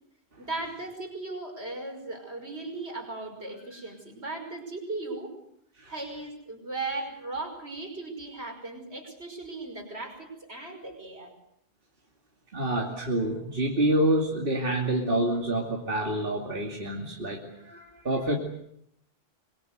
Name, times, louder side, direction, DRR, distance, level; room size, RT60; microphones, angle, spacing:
voice 1, 0.4-5.3 5.9-11.3, right 2 dB, 85° right, 3 dB, 5.9 m, -37 dB
voice 2, 12.5-18.4, right 1 dB, 60° right, 0 dB, 2.9 m, -27 dB
25.5 x 22.0 x 8.0 m, 0.73 s
omnidirectional pair, 1.1 m